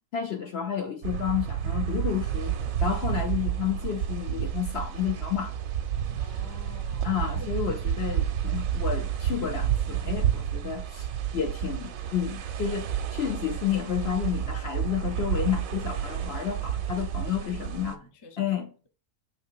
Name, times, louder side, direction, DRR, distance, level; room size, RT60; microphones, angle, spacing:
voice 1, 0.1-5.6 7.0-18.0 18.4-18.7, left 9 dB, 55° left, 0.8 m, -31 dB
sound 1, 1.0-17.9, right 9 dB, 70° right, 1.0 m, -30 dB
voice 2, 6.2-7.1 7.4-7.5 17.4-18.5, left 4 dB, 30° left, 0.4 m, -48 dB
6.5 x 3.3 x 4.6 m
omnidirectional pair, 1.6 m